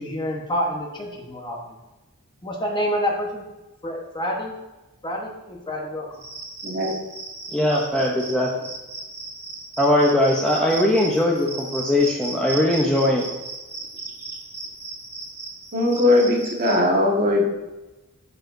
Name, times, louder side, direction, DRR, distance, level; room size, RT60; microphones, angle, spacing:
voice 1, 0.0-1.8 2.4-3.4 3.8-4.5 5.0-6.2, equal, 20° left, 0 dB, 1.1 m, -28 dB
Cricket, 6.1-16.8, right 3 dB, 15° right, 1.5 m, -36 dB
voice 2, 6.6-7.0 15.7-17.5, left 2 dB, 40° right, 0 dB, 1.4 m, -19 dB
voice 3, 7.5-8.5 9.8-13.3, left 1 dB, 5° left, -3 dB, 0.7 m, -20 dB
12.0 x 4.9 x 2.6 m, 1.1 s
head